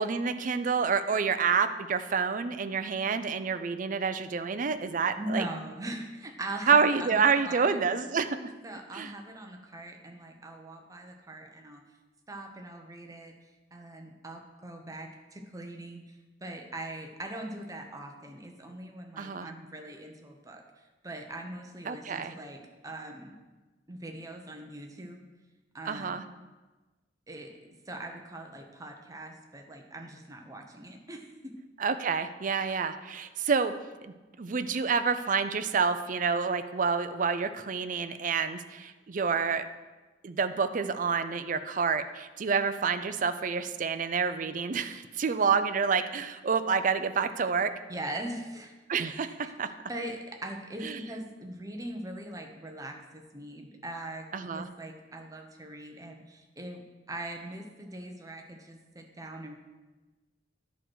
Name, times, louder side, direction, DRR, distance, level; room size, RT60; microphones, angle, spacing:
voice 1, 0.0-5.5 6.7-8.4 8.9-9.1 19.2-19.5 21.9-22.3 25.8-26.2 31.8-33.7 34.0-34.1 34.4-39.7 40.2-47.7 48.9-49.3 49.6-49.7 50.8-51.0 54.3-54.7, right 5 dB, 45° right, 10 dB, 0.5 m, -28 dB
voice 2, 5.2-7.8 8.6-11.8 12.3-13.3 13.7-20.6 21.0-23.4 23.9-25.2 25.7-26.2 27.3-27.5 27.9-31.5 47.9-48.7 49.0-49.5 49.9-59.5, right 1 dB, 20° right, 3 dB, 0.9 m, -41 dB
10.5 x 4.6 x 6.2 m, 1.2 s
head